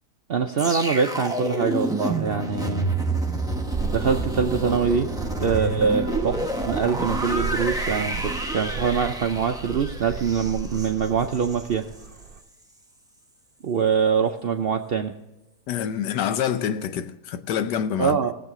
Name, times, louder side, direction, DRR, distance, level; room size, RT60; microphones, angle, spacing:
voice 1, 0.3-2.9 3.9-5.1 5.4-6.4 6.6-11.9 13.6-15.1 18.0-18.4, right 6 dB, 80° right, 0.5 m, -24 dB
sound 1, 0.6-11.7 12.0-12.2, right 2 dB, 5° right, 0.8 m, -29 dB
sound 2, 3.7-12.4, right 5 dB, 40° right, 0.9 m, -35 dB
voice 2, 15.7-18.2, left 8 dB, 80° left, 1.3 m, -26 dB
18.0 x 7.5 x 3.7 m
omnidirectional pair, 1.8 m